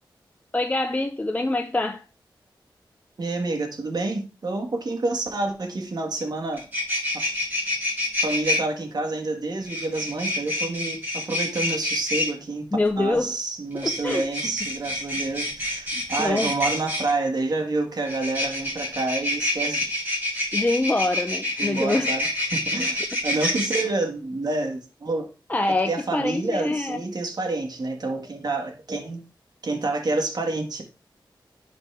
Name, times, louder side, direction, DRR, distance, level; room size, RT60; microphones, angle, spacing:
voice 1, 0.5-2.0 12.7-13.4 13.8-14.2 15.9-16.5 20.5-22.1 23.1-23.2 25.5-27.0, left 2 dB, 20° left, 0.5 m, -25 dB
voice 2, 3.2-6.7 7.1-7.4 8.2-12.7 13.0-19.9 21.6-25.3 25.9-29.2 29.6-30.8, right 2 dB, 55° right, 1.7 m, -28 dB
sound 1, 6.2-6.3 6.5-8.6 9.7-12.3 13.7-17.1 18.0-23.8, left 1 dB, 20° right, 4.9 m, -27 dB
10.5 x 4.2 x 3.4 m
wide cardioid pair, 80°, 8 cm